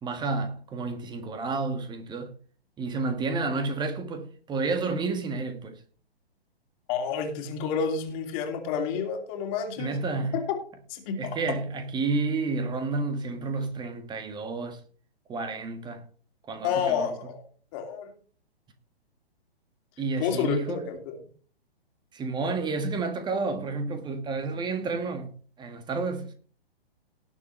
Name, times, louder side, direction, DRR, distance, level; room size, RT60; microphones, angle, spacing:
voice 1, 0.0-2.3 2.8-5.8 9.8-10.4 11.2-14.8 15.3-16.0 16.5-17.1 20.0-20.8 22.1-25.3 25.6-26.3, right 3 dB, 15° right, 1.7 m, -30 dB
voice 2, 6.9-10.0 10.5-10.6 10.9-11.3 16.6-17.4 17.7-18.1 20.2-21.2, left 7 dB, 35° left, 2.6 m, -29 dB
19.0 x 7.3 x 3.2 m
figure-of-eight pair, 125°, 31 cm